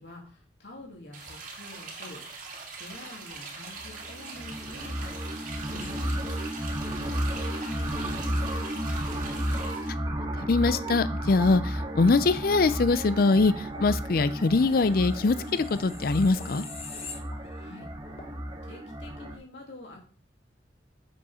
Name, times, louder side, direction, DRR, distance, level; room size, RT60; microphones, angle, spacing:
voice 1, 0.0-5.9 6.8-9.7 17.5-18.3 18.6-20.0, left 1 dB, 75° left, 2.7 m, -48 dB
sound 1, 1.1-9.9, right 4 dB, 45° right, 2.0 m, -42 dB
sound 2, 3.8-19.4, right 1 dB, 20° right, 2.5 m, -33 dB
voice 2, 10.5-16.6, left 3 dB, 55° left, 0.5 m, -23 dB
sound 3, 14.9-17.8 18.2-18.3, left 5 dB, 35° left, 1.1 m, -44 dB
7.2 x 5.6 x 5.6 m
head